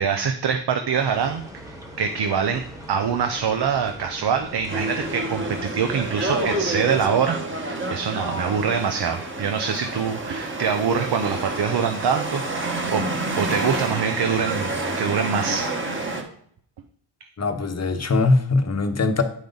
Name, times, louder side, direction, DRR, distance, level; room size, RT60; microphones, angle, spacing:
voice 1, 0.0-1.4 1.7-2.6 2.9-13.0 13.4-15.7, right 6 dB, 60° right, 0.7 m, -24 dB
sound 1, 0.9-7.2, equal, 5° right, 1.2 m, -41 dB
sound 2, 4.7-16.2, right 2 dB, 25° right, 1.1 m, -28 dB
voice 2, 17.4-19.2, left 3 dB, 35° left, 0.9 m, -21 dB
8.9 x 5.2 x 3.9 m
wide cardioid pair, 140°, 44 cm